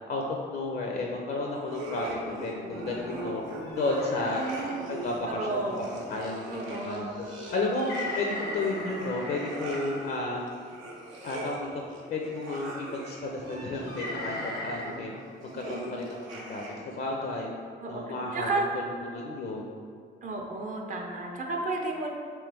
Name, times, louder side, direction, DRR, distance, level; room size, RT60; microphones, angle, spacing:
voice 1, 0.1-3.4 3.8-4.4 4.9-7.0 7.5-7.9 8.2-10.4 11.2-11.7 12.1-15.1 15.5-17.5 17.9-19.7, left 2 dB, 55° left, -1 dB, 0.4 m, -32 dB
sound 1, 1.6-17.0, right 1 dB, 85° right, 0.6 m, -42 dB
sound 2, 2.7-2.8 3.2-3.3 3.6-4.7 6.6-6.8 7.4-9.8 10.9-11.2 12.3-12.7 13.4-14.8, left 1 dB, 80° left, 0.8 m, -38 dB
voice 2, 4.2-5.0 5.3-5.8 6.5-7.2 15.5-16.1 17.8-18.0 18.3-18.7 20.2-22.2, right 2 dB, 40° right, 1 dB, 0.5 m, -33 dB
3.2 x 3.1 x 3.3 m, 2.1 s
cardioid pair, 90°, 20 cm